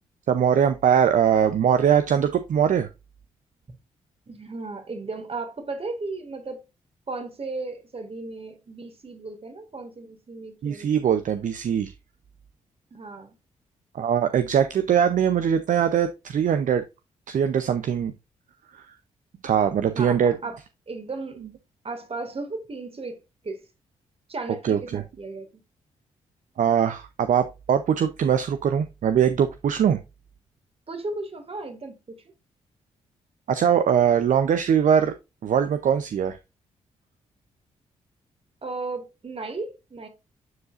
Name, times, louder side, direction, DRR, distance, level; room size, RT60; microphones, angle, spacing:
voice 1, 0.3-2.9 10.6-11.9 13.9-16.8 17.3-18.1 18.7-18.8 19.4-20.3 24.6-25.0 26.6-30.0 33.5-35.1 35.4-36.4, right 8 dB, 60° right, 0.7 m, -21 dB
voice 2, 4.3-6.6 7.1-11.0 12.9-13.3 19.9-20.6 20.9-21.4 21.8-23.2 23.4-23.6 24.3-25.5 30.9-32.2 38.6-40.1, right 3 dB, 40° right, 2.1 m, -35 dB
9.4 x 4.7 x 2.5 m
hypercardioid pair, 40°, 15 cm